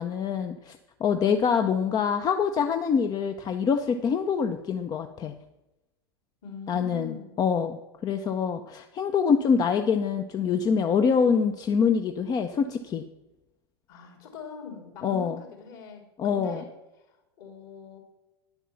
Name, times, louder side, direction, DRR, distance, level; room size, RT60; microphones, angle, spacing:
voice 1, 0.0-5.3 6.7-13.0 15.0-15.4 16.2-16.6, left 6 dB, 30° left, 7 dB, 0.7 m, -25 dB
voice 2, 6.4-7.4 13.9-16.7 17.0-18.0, left 4 dB, 55° left, 2 dB, 3.6 m, -43 dB
10.0 x 8.2 x 7.0 m, 0.98 s
figure-of-eight pair, 90°, 14 cm